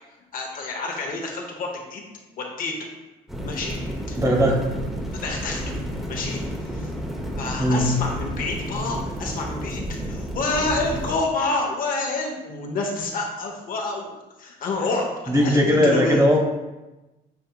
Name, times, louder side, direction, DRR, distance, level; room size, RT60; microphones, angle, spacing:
voice 1, 0.3-2.1 2.4-2.8 3.4-3.8 4.1-4.2 5.1-5.6 6.1-6.4 6.7-6.9 7.4-14.1 14.4-16.2, left 3 dB, 55° left, 1 dB, 0.8 m, -28 dB
sound 1, 3.3-11.2, equal, ahead, 0.7 m, -31 dB
voice 2, 4.2-4.7 7.6-7.9 15.3-16.4, equal, 20° right, -1 dB, 1.0 m, -19 dB
6.8 x 2.7 x 2.2 m, 1.1 s
cardioid pair, 110°, 17 cm